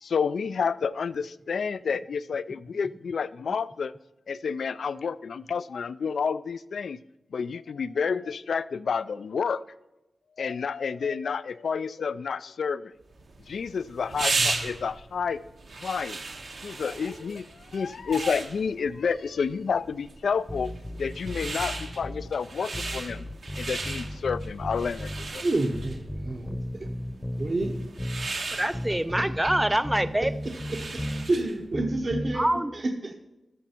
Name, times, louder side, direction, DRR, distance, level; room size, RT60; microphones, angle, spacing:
voice 1, 0.0-3.9 4.3-7.0 7.3-9.6 10.4-12.9 13.5-15.4 15.8-16.2 16.6-20.7 21.0-23.2 23.6-25.4, left 6 dB, 85° left, 16 dB, 0.3 m, -30 dB
sound 1, 13.1-31.6, right 3 dB, 75° right, 1.4 m, -36 dB
sound 2, 20.5-22.3 22.7-25.3 25.7-28.3 28.7-31.3 31.7-32.4, equal, 10° left, 0.8 m, -35 dB
voice 2, 25.3-26.9 27.4-27.8 29.1-29.5 30.2-30.3 30.7-33.1, right 2 dB, 45° right, 3 dB, 0.9 m, -30 dB
voice 3, 28.6-30.3 32.4-32.7, right 1 dB, 10° right, 12 dB, 0.3 m, -25 dB
13.5 x 6.7 x 4.4 m, 0.99 s
wide cardioid pair, 95°, 0 cm